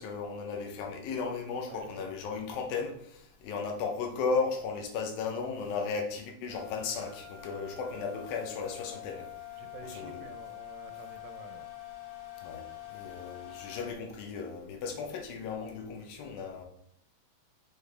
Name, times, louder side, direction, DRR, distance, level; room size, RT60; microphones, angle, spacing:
voice 1, 0.0-9.3 9.8-10.2 12.4-16.7, left 5 dB, 85° left, 3 dB, 2.7 m, -35 dB
voice 2, 1.7-2.1 9.6-11.7, right 7 dB, 90° right, 7 dB, 2.4 m, -49 dB
sound 1, 6.5-13.9, left 13 dB, 55° left, 2.3 m, -45 dB
6.8 x 4.6 x 3.4 m, 0.69 s
omnidirectional pair, 4.1 m